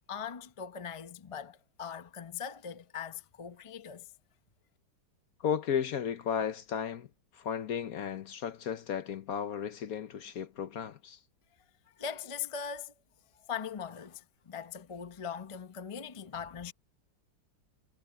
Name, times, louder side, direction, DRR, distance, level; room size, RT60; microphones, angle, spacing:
voice 1, 0.1-4.1 12.0-12.9 13.5-16.7, left 7 dB, 30° left, 0.6 m, -40 dB
voice 2, 5.4-7.1 7.3-11.2, left 8 dB, 60° left, 1.2 m, -34 dB
omnidirectional pair, 2.0 m